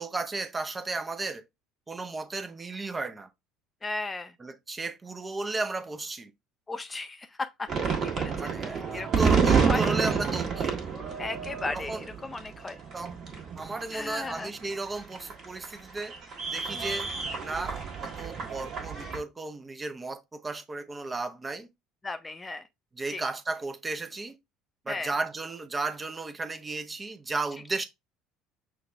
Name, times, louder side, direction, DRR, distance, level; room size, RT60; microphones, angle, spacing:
voice 1, 0.0-1.4 1.9-3.3 4.4-6.3 8.4-10.8 11.7-12.0 12.9-13.1 13.6-16.1 16.5-17.1 17.4-21.7 23.0-24.4 24.9-27.9, right 3 dB, 20° right, 0.6 m, -34 dB
voice 2, 3.8-4.3 6.7-8.3 8.9-9.8 11.2-12.8 13.9-14.5 16.7-17.0 22.0-22.6 23.1-23.2 24.9-25.1, left 3 dB, 20° left, 0.4 m, -36 dB
sound 1, 7.7-19.2, right 6 dB, 45° right, 1.4 m, -29 dB
6.1 x 2.4 x 3.3 m
figure-of-eight pair, 65°, 0 cm